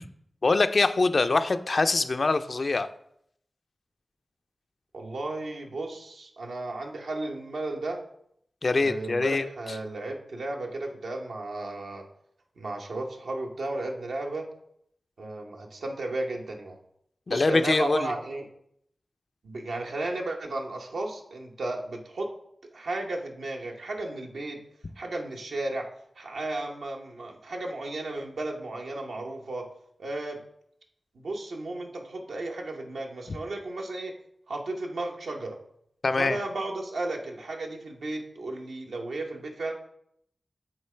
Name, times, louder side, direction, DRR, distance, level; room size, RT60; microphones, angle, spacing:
voice 1, 0.4-2.9 8.6-9.4 17.3-18.1 36.0-36.4, left 3 dB, 60° left, 10 dB, 0.4 m, -24 dB
voice 2, 4.9-8.0 8.8-12.0 12.6-14.5 15.2-16.8 17.3-18.5 19.4-22.3 22.7-24.6 25.0-25.9 26.2-29.7 30.0-30.4 31.1-34.1 34.5-35.6 36.2-39.7, right 2 dB, 90° right, 1 dB, 0.9 m, -34 dB
8.6 x 3.8 x 3.3 m, 0.72 s
cardioid pair, 40°, 0 cm